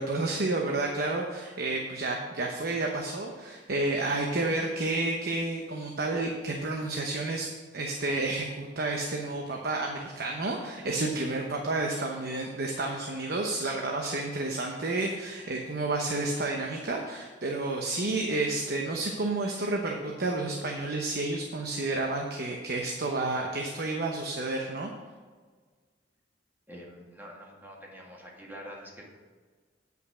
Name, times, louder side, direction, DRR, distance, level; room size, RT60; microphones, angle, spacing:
voice 1, 0.0-24.9, right 2 dB, 60° right, 1 dB, 1.0 m, -30 dB
voice 2, 26.7-29.1, equal, 10° right, -2 dB, 1.9 m, -46 dB
9.3 x 5.5 x 6.2 m, 1.5 s
head